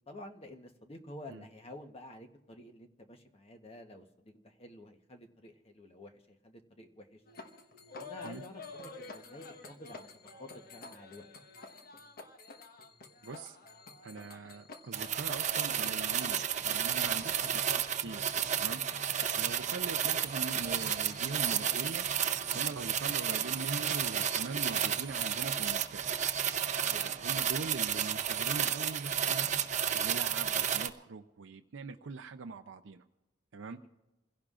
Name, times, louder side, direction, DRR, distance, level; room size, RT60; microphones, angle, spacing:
voice 1, 0.1-7.2 8.0-9.5 9.8-11.3 17.1-17.3 18.9-19.0 26.8-27.2 33.7-33.9, left 1 dB, 30° left, 5 dB, 1.1 m, -50 dB
sound 1, 7.3-25.5, left 3 dB, 50° left, 1.2 m, -51 dB
voice 2, 13.2-13.6 14.0-18.3 18.6-18.8 19.3-22.1 22.5-26.1 26.9-29.5 29.9-33.0 33.5-33.8, right 4 dB, 80° right, 6 dB, 0.6 m, -42 dB
sound 2, 14.9-30.9, right 9 dB, 40° right, 0.7 m, -32 dB
28.5 x 16.5 x 2.5 m, 1.0 s
head